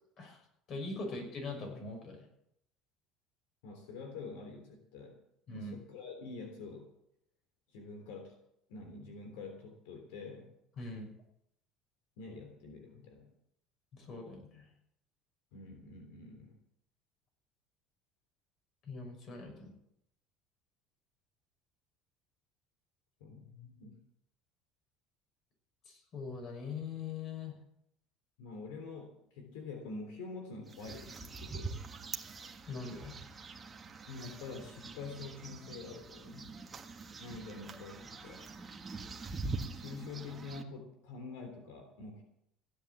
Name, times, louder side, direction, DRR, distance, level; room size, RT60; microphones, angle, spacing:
voice 1, 0.7-2.2 5.5-5.7 10.8-11.1 13.9-14.6 18.9-19.7 25.9-27.5 32.7-33.2, left 3 dB, 45° left, 3 dB, 6.2 m, -42 dB
voice 2, 3.6-5.2 5.5-6.9 7.7-8.4 8.7-10.5 12.2-13.3 15.5-16.5 23.2-24.0 28.4-31.7 34.1-36.5 37.2-38.5 39.7-42.2, left 4 dB, 90° left, 5 dB, 3.4 m, -46 dB
sound 1, 30.7-40.6, right 4 dB, 20° right, 1.5 m, -44 dB
16.0 x 10.0 x 7.4 m, 0.75 s
cardioid pair, 130°, 0 cm